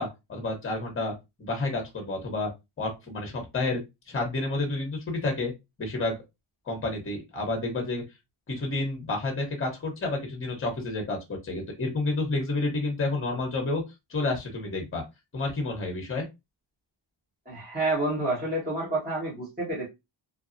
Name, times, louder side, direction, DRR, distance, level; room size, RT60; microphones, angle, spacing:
voice 1, 0.0-2.5 2.8-3.8 4.1-5.5 5.8-6.2 6.7-8.0 8.5-13.8 14.1-15.0 15.3-16.2, left 2 dB, 25° left, 2 dB, 0.9 m, -30 dB
voice 2, 17.4-19.9, right 2 dB, 20° right, -8 dB, 1.3 m, -29 dB
2.8 x 2.2 x 2.5 m, 0.22 s
wide cardioid pair, 145°, 48 cm